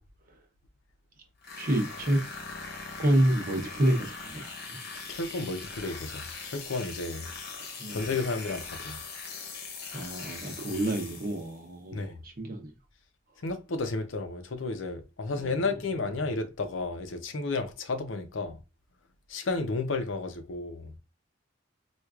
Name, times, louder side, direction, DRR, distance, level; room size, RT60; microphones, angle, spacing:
sound 1, 1.4-11.6, left 4 dB, 55° left, 0.9 m, -41 dB
voice 1, 1.6-2.2 3.0-4.8 7.7-8.0 9.9-12.7 15.4-15.7, right 1 dB, 45° right, 0.8 m, -28 dB
voice 2, 5.1-7.3 7.9-9.0 11.9-12.2 13.4-18.6 19.3-21.0, left 3 dB, 75° left, 0.6 m, -32 dB
4.5 x 2.4 x 2.3 m
head